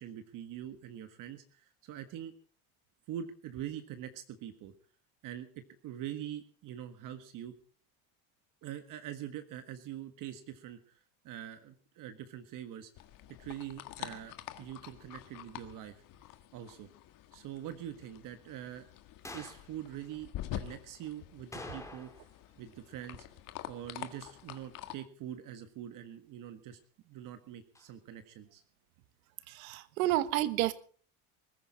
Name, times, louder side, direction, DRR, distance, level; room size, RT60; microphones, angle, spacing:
voice 1, 0.0-2.3 3.1-4.7 5.2-7.5 8.6-12.9 13.4-16.0 16.5-16.9 17.3-18.9 19.3-22.1 22.6-23.3 23.7-26.8 27.0-28.6, right 11 dB, 50° right, 1.6 m, -44 dB
sound 1, 13.0-25.0, left 13 dB, 50° left, 1.7 m, -47 dB
sound 2, 19.2-19.7 21.5-22.4 22.6-22.7 27.7-27.9, left 2 dB, 5° left, 2.4 m, -46 dB
voice 2, 29.5-30.7, right 15 dB, 90° right, 1.3 m, -30 dB
21.0 x 14.0 x 4.2 m
supercardioid pair, 130°, 40 cm